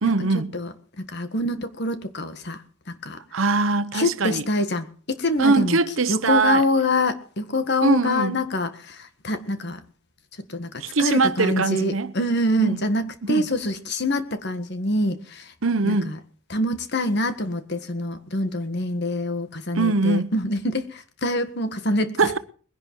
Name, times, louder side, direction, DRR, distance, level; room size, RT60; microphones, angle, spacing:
voice 1, 0.0-0.5 3.3-4.4 5.4-6.6 7.8-8.3 10.8-12.1 12.6-12.8 13.3-13.5 15.6-16.1 19.8-20.3 22.2-22.4, right 3 dB, 70° right, 0.9 m, -22 dB
voice 2, 0.5-3.2 3.9-5.8 6.1-9.8 10.5-15.5 15.8-16.2 16.5-22.4, left 1 dB, 55° left, 1.6 m, -25 dB
21.0 x 11.0 x 4.7 m
head